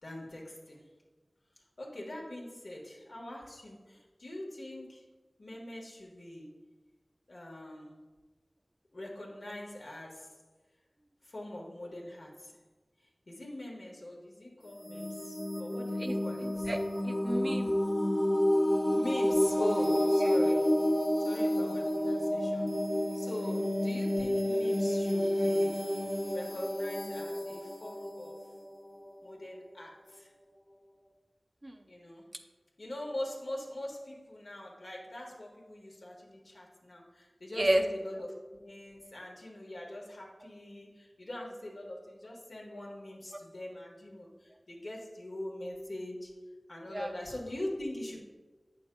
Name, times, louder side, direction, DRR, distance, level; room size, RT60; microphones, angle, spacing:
voice 1, 0.0-0.8 1.8-5.0 5.4-6.6 7.3-7.9 8.9-10.3 11.2-12.6 13.0-16.7 18.9-20.8 21.2-22.8 23.1-25.8 26.3-28.4 29.2-30.3 31.9-32.3 32.8-46.3 46.7-48.2, left 1 dB, 80° left, -2 dB, 1.3 m, -42 dB
sound 1, 14.6-29.3, left 1 dB, 40° left, 1.2 m, -30 dB
voice 2, 16.7-17.8 20.2-20.3 31.6-31.7 37.6-37.8 38.1-38.2 46.9-47.1, right 1 dB, 35° right, 5 dB, 0.6 m, -31 dB
8.3 x 6.2 x 2.2 m, 1.3 s
wide cardioid pair, 45°, 0 cm